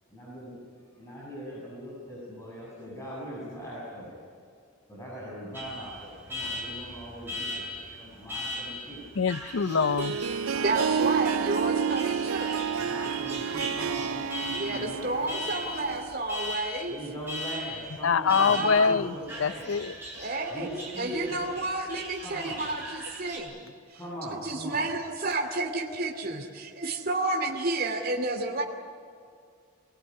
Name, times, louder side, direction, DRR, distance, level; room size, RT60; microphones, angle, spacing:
voice 1, 0.1-0.6 1.0-4.1 4.9-9.0 10.4-11.1 12.8-15.3 16.9-19.7 20.5-21.6 22.2-22.6 23.9-24.8, equal, 15° left, -8 dB, 7.3 m, -40 dB
Alarm, 5.5-23.4, left 1 dB, 10° right, 7.2 m, -39 dB
voice 2, 9.2-10.5 18.0-19.1 19.4-19.9, left 5 dB, 70° left, 16 dB, 0.5 m, -25 dB
Harp, 9.7-16.2, right 7 dB, 80° right, 0.5 m, -30 dB
voice 3, 10.6-12.6 14.5-17.0 18.2-19.0 20.1-20.7 21.0-24.0 24.3-28.6, right 2 dB, 45° right, 1 dB, 2.6 m, -31 dB
24.5 x 20.5 x 9.7 m, 2.3 s
head